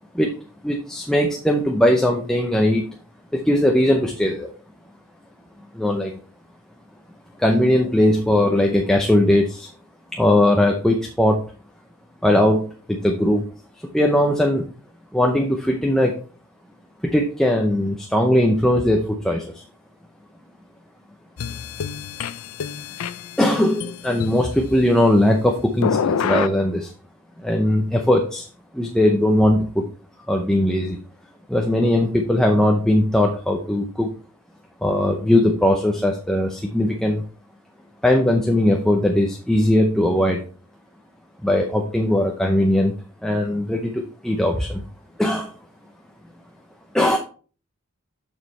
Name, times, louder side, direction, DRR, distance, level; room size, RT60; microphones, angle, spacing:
voice 1, 0.6-2.9 3.3-4.5 5.7-6.2 7.4-9.7 10.1-11.4 12.2-13.4 13.9-14.6 15.1-16.1 17.1-19.6 23.4-26.9 27.4-28.5 28.7-29.8 30.3-31.0 31.5-34.1 34.8-37.2 38.0-40.4 41.4-42.9 43.2-44.8 45.2-45.5 46.9-47.2, left 1 dB, 5° left, 1 dB, 0.6 m, -19 dB
sound 1, 21.4-24.7 25.8-26.5, left 7 dB, 80° left, 0.4 m, -27 dB
7.0 x 6.4 x 3.2 m, 0.39 s
head